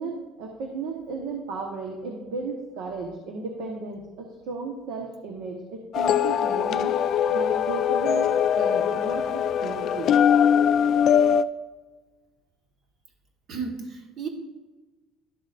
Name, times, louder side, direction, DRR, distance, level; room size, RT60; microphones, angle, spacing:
voice 1, 0.0-7.0 7.3-10.2, right 3 dB, 75° right, 1 dB, 1.2 m, -34 dB
sound 1, 5.9-11.4, left 8 dB, 40° left, 0.3 m, -22 dB
voice 2, 13.5-14.3, right 5 dB, 40° right, 3 dB, 1.4 m, -33 dB
12.0 x 7.4 x 2.6 m, 1.2 s
cardioid pair, 165°, 0 cm